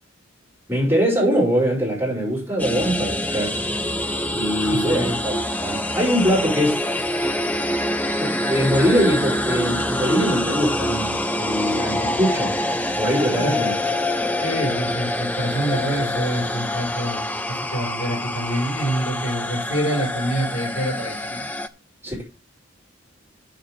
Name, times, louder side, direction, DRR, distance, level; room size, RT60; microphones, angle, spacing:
voice 1, 0.7-3.6 4.3-6.8 8.2-12.5 13.0-13.7 22.0-22.2, equal, 10° right, 4.9 m, -22 dB
sound 1, 2.6-21.7, left 1 dB, 10° left, 0.5 m, -25 dB
voice 2, 4.6-5.2 13.3-13.5 14.4-21.5, right 1 dB, 55° left, 5.3 m, -26 dB
7.3 x 6.9 x 6.5 m
head